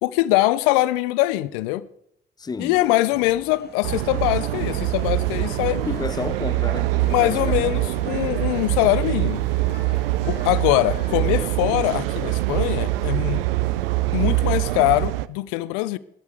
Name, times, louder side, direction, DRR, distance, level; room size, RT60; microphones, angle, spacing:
voice 1, 0.0-1.9 2.6-5.8 7.1-9.4 10.3-13.4 14.1-16.0, left 17 dB, 65° left, 0.6 m, -22 dB
voice 2, 2.4-2.8 5.7-6.9 7.2-7.7, left 4 dB, 15° left, 0.4 m, -31 dB
Male speech man speaking, 2.7-11.5, left 6 dB, 35° left, 1.4 m, -42 dB
sound 1, 3.8-15.3, right 17 dB, 75° right, 0.5 m, -24 dB
15.0 x 12.5 x 3.4 m
figure-of-eight pair, 45°, 29 cm